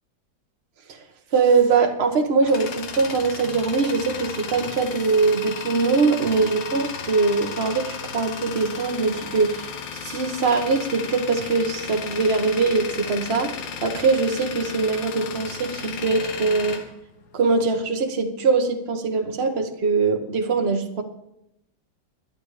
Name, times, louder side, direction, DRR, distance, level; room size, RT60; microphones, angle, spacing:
voice 1, 1.3-9.7 10.0-16.8 17.3-21.0, right 4 dB, 35° right, 4 dB, 1.5 m, -22 dB
Tools, 1.9-17.8, left 6 dB, 75° left, 1.8 m, -35 dB
12.5 x 11.5 x 5.0 m, 0.79 s
omnidirectional pair, 2.0 m